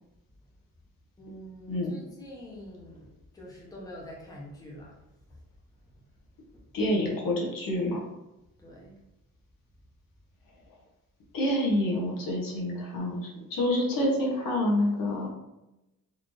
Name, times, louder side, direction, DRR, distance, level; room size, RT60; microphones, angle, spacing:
voice 1, 1.2-5.0 5.3-5.4 8.6-8.9, equal, 10° left, -4 dB, 0.8 m, -45 dB
voice 2, 6.7-8.1 11.3-15.3, left 1 dB, 80° left, -2 dB, 1.2 m, -27 dB
4.1 x 2.7 x 3.1 m, 0.94 s
cardioid pair, 160°, 33 cm